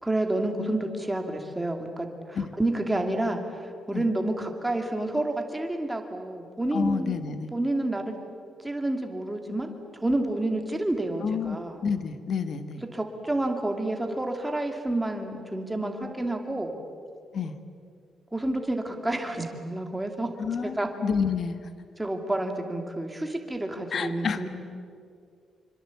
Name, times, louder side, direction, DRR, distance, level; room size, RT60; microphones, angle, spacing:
voice 1, 0.0-3.4 3.9-7.2 7.5-8.1 8.6-9.7 10.0-11.8 12.9-16.7 18.3-20.3 20.6-20.9 22.0-24.5, right 1 dB, 10° right, 4 dB, 2.5 m, -29 dB
voice 2, 6.7-7.5 11.2-12.8 17.3-17.5 20.4-21.7 23.9-24.4, left 6 dB, 45° left, 10 dB, 1.5 m, -29 dB
26.5 x 25.0 x 8.4 m, 2.3 s
wide cardioid pair, 175°, 0 cm